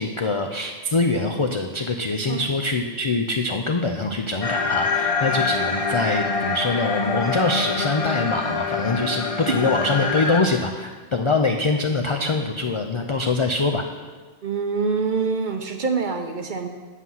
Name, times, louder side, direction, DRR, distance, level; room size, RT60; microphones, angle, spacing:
voice 1, 0.0-13.8, left 3 dB, 55° left, 3 dB, 0.3 m, -24 dB
sound 1, 4.4-10.4, left 4 dB, 30° left, 0.8 m, -25 dB
voice 2, 14.4-16.7, right 5 dB, 50° right, 5 dB, 0.7 m, -25 dB
8.2 x 7.5 x 5.6 m, 1.4 s
omnidirectional pair, 1.3 m